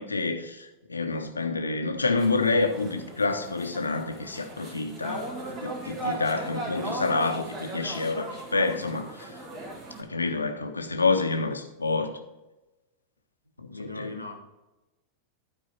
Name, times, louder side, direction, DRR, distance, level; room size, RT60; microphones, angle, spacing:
voice 1, 0.0-9.3 10.0-12.2 13.6-14.1, left 3 dB, 80° left, 0.8 m, -28 dB
sound 1, 2.2-10.0, right 2 dB, 35° right, 1.9 m, -38 dB
voice 2, 13.7-14.4, left 2 dB, 90° right, 1.2 m, -38 dB
12.0 x 4.7 x 4.5 m
figure-of-eight pair, 90°, 0 cm